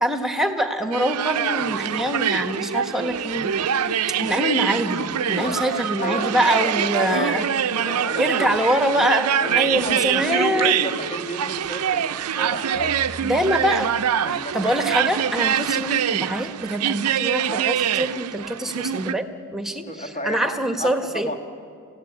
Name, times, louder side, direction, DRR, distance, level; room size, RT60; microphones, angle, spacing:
voice 1, 0.0-3.5 4.2-7.4 8.1-10.9 13.2-13.9 14.5-19.3 19.5-21.3, equal, ahead, 7 dB, 1.4 m, -24 dB
sound 1, 0.9-19.1, right 9 dB, 85° right, 0.6 m, -24 dB
sound 2, 1.4-11.2, left 5 dB, 50° left, 5.6 m, -38 dB
voice 2, 6.0-8.7 9.4-12.9 14.2-15.0 19.9-21.3, equal, 30° left, 5 dB, 1.8 m, -32 dB
sound 3, 12.7-15.0, right 1 dB, 70° left, 4.1 m, -42 dB
28.0 x 16.0 x 9.6 m, 2.3 s
head